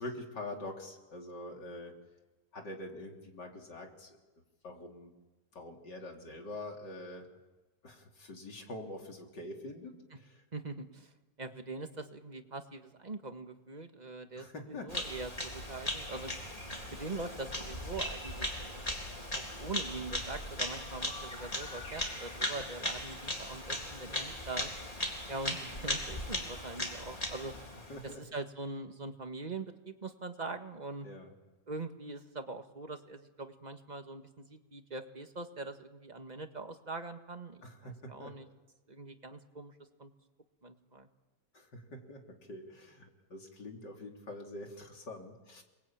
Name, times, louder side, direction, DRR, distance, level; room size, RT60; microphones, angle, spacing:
voice 1, 0.0-2.0 2.5-4.2 4.6-5.1 5.5-7.3 7.8-10.4 14.3-14.9 27.9-28.2 31.0-31.3 37.6-38.4 41.5-45.6, left 1 dB, 90° left, 2 dB, 4.0 m, -45 dB
voice 2, 10.5-11.1 11.4-16.4 16.9-18.5 19.3-24.7 25.3-27.5 28.2-31.1 31.7-38.5 38.9-39.7 40.0-40.1 40.6-41.1, right 3 dB, 25° right, 6 dB, 1.8 m, -42 dB
Bird vocalization bird call bird song, 14.9-28.1, left 1 dB, 20° left, 3.8 m, -38 dB
29.5 x 21.5 x 8.9 m, 1.1 s
omnidirectional pair, 1.8 m